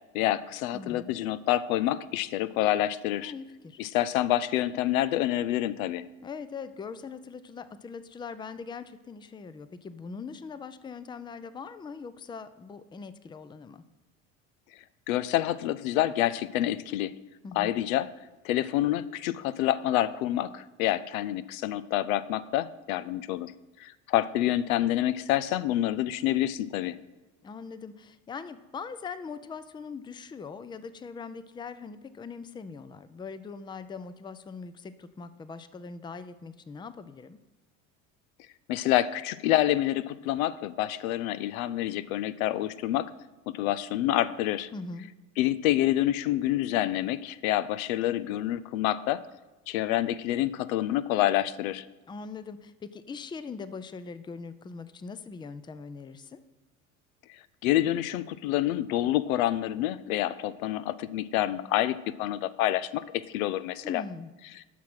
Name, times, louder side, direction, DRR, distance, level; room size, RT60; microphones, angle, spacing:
voice 1, 0.1-3.3 3.8-6.0 15.1-17.1 17.6-18.1 18.4-23.5 23.8-27.0 38.7-43.1 43.5-44.7 45.4-49.2 49.7-51.8 57.6-64.0, left 13 dB, 80° left, 15 dB, 0.5 m, -27 dB
voice 2, 0.7-1.1 3.2-3.8 6.2-13.8 17.4-17.7 27.4-37.4 44.7-45.1 52.1-56.4 63.8-64.3, left 5 dB, 10° left, 13 dB, 0.4 m, -41 dB
8.2 x 5.9 x 6.0 m, 1.2 s
hypercardioid pair, 75°, 40 cm